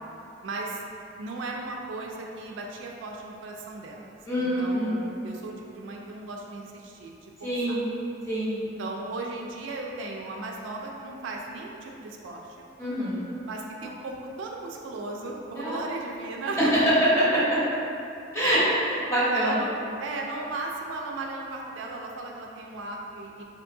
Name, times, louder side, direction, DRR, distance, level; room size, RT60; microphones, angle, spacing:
voice 1, 0.4-0.8 1.2-7.8 8.8-12.4 13.5-16.6 18.4-18.6 19.3-23.4, right 2 dB, 65° right, 0 dB, 0.3 m, -36 dB
voice 2, 4.3-5.0 7.4-7.8 8.3-8.6 12.8-13.2 15.5-16.0 16.5-17.4 18.3-19.5, equal, 15° left, -10 dB, 0.8 m, -24 dB
3.5 x 2.5 x 2.6 m, 2.6 s
head